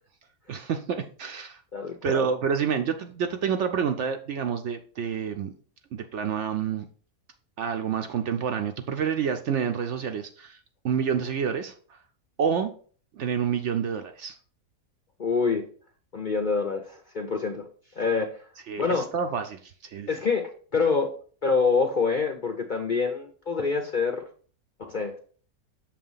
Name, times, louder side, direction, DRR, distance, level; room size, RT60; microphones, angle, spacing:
voice 1, 0.5-1.6 2.0-5.5 5.9-6.9 7.6-10.6 10.8-12.0 12.4-12.7 13.1-14.4 18.7-20.1, right 7 dB, 65° right, 6 dB, 0.8 m, -28 dB
voice 2, 1.7-2.3 15.2-15.6 16.1-17.7 18.0-18.4 18.8-19.1 20.1-21.1 21.4-24.2 24.9-25.2, left 4 dB, 50° left, 3 dB, 0.6 m, -26 dB
6.7 x 3.0 x 5.4 m, 0.44 s
omnidirectional pair, 1.5 m